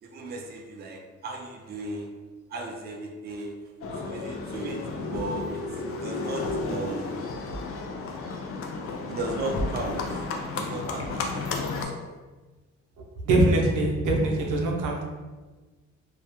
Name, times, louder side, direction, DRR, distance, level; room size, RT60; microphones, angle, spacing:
voice 1, 0.0-2.1 2.5-3.5 3.9-7.2 9.1-12.2, right 2 dB, 35° right, 2 dB, 0.4 m, -36 dB
Livestock farm animals working animals, 3.8-11.8, left 3 dB, 50° left, 0.4 m, -32 dB
voice 2, 13.2-15.0, right 2 dB, 90° right, 0 dB, 0.5 m, -23 dB
2.3 x 2.1 x 2.8 m, 1.3 s
cardioid pair, 90°, 30 cm